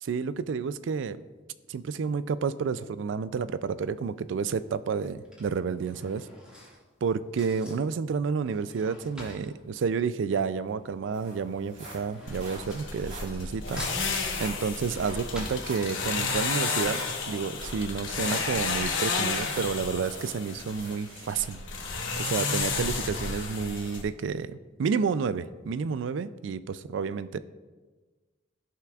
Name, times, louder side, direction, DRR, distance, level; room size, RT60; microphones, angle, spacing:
voice 1, 0.0-1.2 1.7-6.3 7.0-17.0 17.3-21.6 22.2-27.4, right 5 dB, 70° right, 15 dB, 0.3 m, -30 dB
Drawer open or close / Cutlery silverware, 3.8-4.1 5.0-10.9 11.1-13.5 13.8-16.3 16.7-16.8 17.0-17.1, left 1 dB, 5° right, 1.9 m, -46 dB
sound 1, 10.7-21.5 22.0-22.2 22.7-22.8, right 2 dB, 40° right, 2.7 m, -47 dB
sound 2, 12.3-24.0, left 4 dB, 80° left, 1.1 m, -32 dB
15.0 x 5.8 x 2.4 m, 1.3 s
head